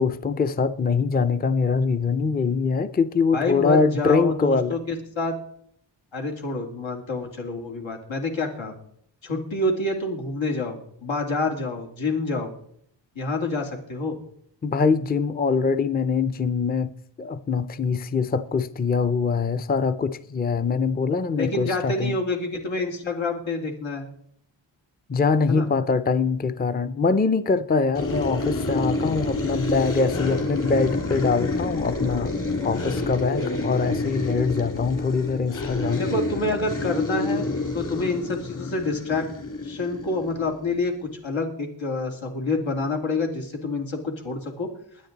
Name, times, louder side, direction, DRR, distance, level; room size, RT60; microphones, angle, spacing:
voice 1, 0.0-4.8 14.6-16.9 17.2-22.2 25.1-32.3 32.6-36.0, left 4 dB, 20° left, 0.4 m, -23 dB
voice 2, 3.3-5.3 6.1-8.7 9.2-12.5 13.1-14.2 21.3-24.1 25.5-25.7 36.0-37.5 37.7-39.3 39.6-44.7, left 2 dB, 90° left, 2.8 m, -27 dB
sound 1, 27.9-40.9, left 2 dB, 45° left, 2.6 m, -28 dB
22.0 x 9.6 x 4.0 m
wide cardioid pair, 145°, 45 cm